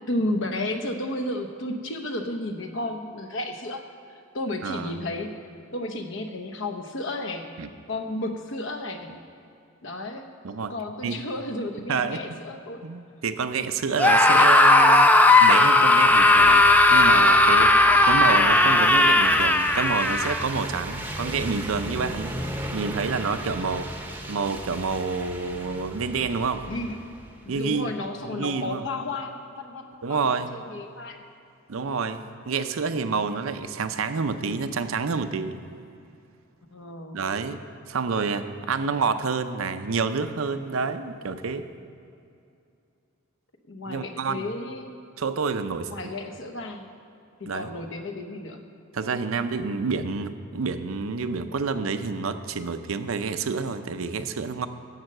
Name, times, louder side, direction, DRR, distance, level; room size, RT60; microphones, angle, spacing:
voice 1, 0.1-3.8 4.3-5.4 5.7-7.5 7.9-9.1 9.8-10.3 10.7-12.8 26.7-27.1 27.4-31.2 36.7-37.2 43.7-45.0 45.9-46.9 47.4-48.6, left 1 dB, 60° left, 6 dB, 0.9 m, -32 dB
voice 2, 4.6-5.0 7.6-7.7 10.4-10.7 11.0-11.2 11.9-12.2 12.8-17.7 18.0-22.4 22.7-23.9 24.3-26.6 27.5-27.9 28.2-28.8 30.0-30.5 31.7-35.6 37.1-37.6 37.9-41.7 43.9-44.5 45.2-45.9 47.5-47.7 48.9-54.7, right 5 dB, 80° right, 10 dB, 0.6 m, -28 dB
Screaming, 14.0-20.4, left 2 dB, 10° left, 0.3 m, -16 dB
sound 1, 16.0-27.6, right 1 dB, 10° right, 0.8 m, -37 dB
10.5 x 7.5 x 6.5 m, 2.6 s
head